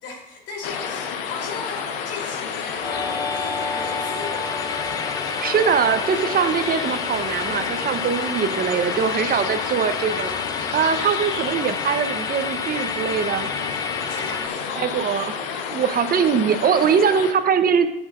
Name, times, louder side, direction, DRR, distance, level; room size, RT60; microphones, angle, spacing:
voice 1, 0.0-4.7 14.1-15.0 15.3-15.7 16.2-16.3, left 4 dB, 55° left, 0 dB, 3.3 m, -37 dB
sound 1, 0.6-17.3, left 7 dB, 70° left, 1.2 m, -30 dB
Musical instrument, 2.8-14.5, left 4 dB, 15° left, 0.4 m, -31 dB
voice 2, 5.4-10.4 10.7-13.5 14.8-15.3 15.7-17.9, right 7 dB, 30° right, 10 dB, 0.9 m, -22 dB
14.5 x 8.0 x 2.5 m, 0.84 s
hypercardioid pair, 90°, 29 cm